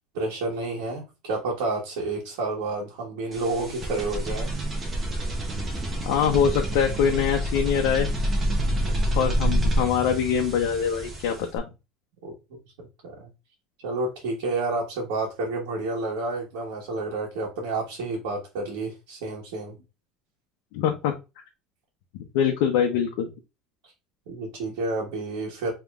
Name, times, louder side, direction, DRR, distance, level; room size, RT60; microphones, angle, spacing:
voice 1, 0.1-4.5 8.8-8.9 12.2-12.6 13.0-13.3 13.8-19.7 24.3-25.7, right 2 dB, 90° right, -4 dB, 1.3 m, -30 dB
sound 1, 3.3-11.6, equal, 15° right, 0.9 m, -27 dB
voice 2, 6.1-8.1 9.1-11.6 20.7-21.1 22.3-23.3, left 8 dB, 70° left, 2 dB, 0.6 m, -23 dB
5.2 x 2.9 x 2.4 m, 0.27 s
cardioid pair, 175°, 0 cm